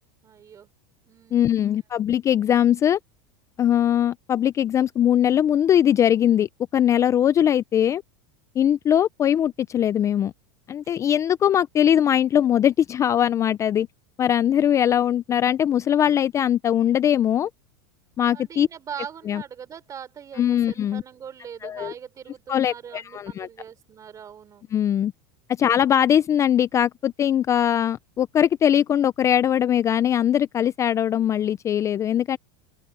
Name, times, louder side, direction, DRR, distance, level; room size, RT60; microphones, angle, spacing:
voice 1, 0.2-0.7 1.1-1.7 10.8-11.0 18.3-24.7 25.6-25.8, right 8 dB, 25° right, 3.7 m, -41 dB
voice 2, 1.3-3.0 3.6-8.0 8.6-10.3 10.7-13.9 14.2-17.5 18.2-18.7 19.3-19.4 20.4-21.0 21.6-21.9 22.5-23.5 24.7-25.1 25.6-32.4, left 10 dB, 25° left, 0.4 m, -21 dB
open air
supercardioid pair, 135°, 13 cm